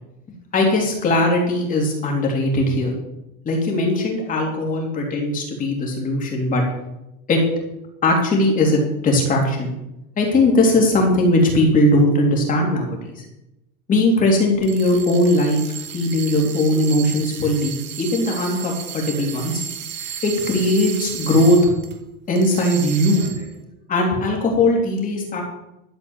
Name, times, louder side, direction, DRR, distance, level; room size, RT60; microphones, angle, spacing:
voice 1, 0.5-2.9 3.4-6.6 7.3-7.4 8.0-9.7 10.2-13.2 13.9-15.6 15.9-19.6 20.2-21.6 22.3-23.5 23.9-25.4, left 1 dB, 20° left, 0 dB, 3.0 m, -19 dB
sound 1, 14.6-22.0 22.4-23.5, right 9 dB, 25° right, 1.5 m, -34 dB
12.5 x 7.8 x 7.3 m, 0.90 s
supercardioid pair, 170°, 43 cm